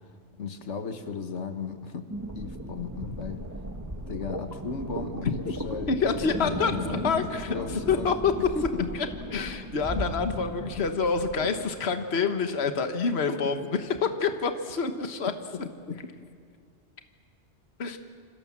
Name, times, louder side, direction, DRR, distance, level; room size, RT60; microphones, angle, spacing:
voice 1, 0.4-2.1 2.3-3.4 4.1-8.1 8.5-8.9 10.8-10.9 11.4-11.7 13.3-13.4 15.9-16.0, left 5 dB, 85° left, 8 dB, 1.7 m, -35 dB
sound 1, 2.1-11.5, right 1 dB, 15° right, 1.6 m, -36 dB
voice 2, 5.9-8.3 8.9-9.1 9.3-15.3 17.8-18.0, left 5 dB, 65° left, 7 dB, 1.5 m, -27 dB
27.0 x 26.5 x 7.4 m, 2.1 s
omnidirectional pair, 1.2 m